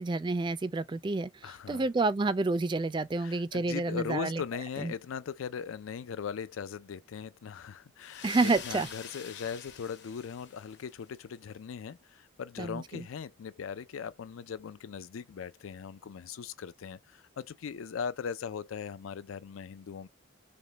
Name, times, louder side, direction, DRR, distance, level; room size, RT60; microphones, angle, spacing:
voice 1, 0.0-1.3 1.7-4.4 4.8-4.9 8.2-8.9 12.6-13.0, right 3 dB, 25° right, 0.3 m, -29 dB
voice 2, 1.4-1.9 3.2-20.1, left 6 dB, 90° left, 0.4 m, -39 dB
sound 1, 8.0-11.0, left 7 dB, 55° left, 1.0 m, -46 dB
5.2 x 2.2 x 2.8 m
head